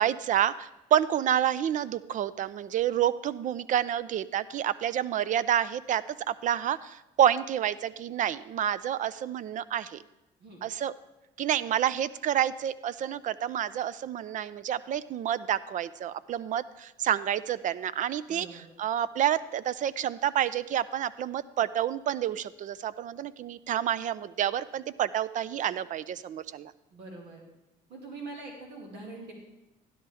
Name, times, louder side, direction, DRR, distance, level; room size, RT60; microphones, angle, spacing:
voice 1, 0.0-10.0 10.6-10.9 11.4-26.7, right 10 dB, 50° right, 17 dB, 0.4 m, -29 dB
voice 2, 18.3-18.7 26.9-27.4 27.9-29.3, right 3 dB, 80° right, 0 dB, 2.1 m, -43 dB
12.5 x 11.0 x 3.4 m, 0.95 s
cardioid pair, 110°, 17 cm